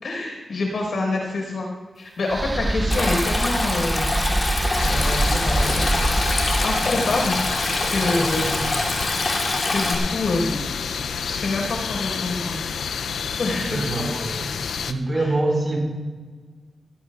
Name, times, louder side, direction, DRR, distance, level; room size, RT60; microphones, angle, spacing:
voice 1, 0.0-1.7 2.0-4.2 4.8-5.9 6.6-7.5 7.8-8.6 9.7-10.6 11.2-12.6 13.4-13.9, left 2 dB, 70° left, 0 dB, 4.9 m, -26 dB
sound 1, 2.3-9.4, right 2 dB, 20° right, 0.5 m, -26 dB
Stream, 2.9-10.0, left 2 dB, 40° left, 2.9 m, -25 dB
sound 2, 4.8-14.9, left 6 dB, 90° left, 0.5 m, -29 dB
voice 2, 7.8-8.6 13.5-14.5 14.9-15.8, right 2 dB, 45° right, -1 dB, 4.9 m, -26 dB
18.5 x 16.0 x 2.5 m, 1.4 s
cardioid pair, 60°, 0 cm